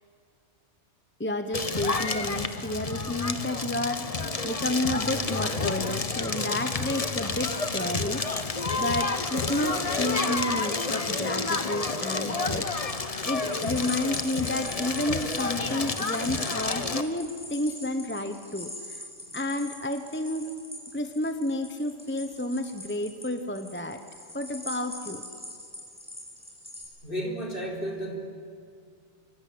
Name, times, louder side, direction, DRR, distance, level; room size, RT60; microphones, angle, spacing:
voice 1, 1.2-19.0 19.3-20.5 20.9-24.0 24.3-25.2, left 1 dB, 10° left, 7 dB, 1.1 m, -31 dB
Crackle, 1.5-17.0, left 3 dB, 30° left, 1.1 m, -29 dB
sound 1, 12.8-26.8, left 1 dB, 5° right, 6.2 m, -43 dB
voice 2, 27.0-28.2, equal, 50° left, -1 dB, 4.5 m, -33 dB
25.5 x 24.5 x 8.7 m, 2.2 s
omnidirectional pair, 1.2 m